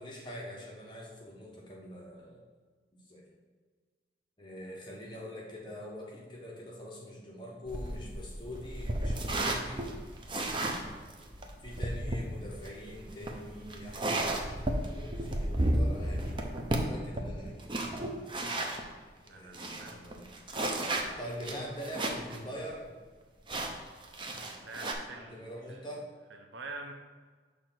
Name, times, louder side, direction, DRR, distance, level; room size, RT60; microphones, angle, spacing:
voice 1, 0.0-2.4 2.9-3.3 4.4-9.9 11.6-16.4 16.6-17.7 19.2-20.3 21.2-22.9 25.1-26.1, equal, 25° left, -3 dB, 1.1 m, -44 dB
sound 1, 7.7-18.8 19.3-19.4 19.5-22.4 22.7-22.8 23.5-24.9, right 1 dB, 25° right, 0.6 m, -33 dB
voice 2, 19.3-20.0 24.6-25.8 26.5-26.9, right 3 dB, 80° right, 2 dB, 0.6 m, -45 dB
6.4 x 3.3 x 5.9 m, 1.5 s
head